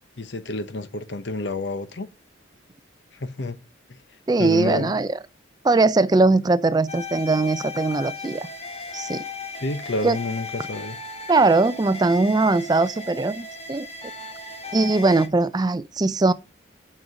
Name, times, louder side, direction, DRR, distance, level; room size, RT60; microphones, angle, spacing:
voice 1, 0.2-2.1 3.1-3.6 3.9-4.0 4.4-5.0 9.6-11.0, left 2 dB, 65° left, 0.8 m, -29 dB
voice 2, 4.3-5.2 5.6-8.5 8.9-9.2 10.0-10.2 11.3-13.9 14.7-16.3, right 3 dB, 20° right, 0.3 m, -20 dB
sound 1, 6.9-15.3, left 3 dB, 35° left, 1.2 m, -36 dB
7.5 x 6.1 x 5.1 m
head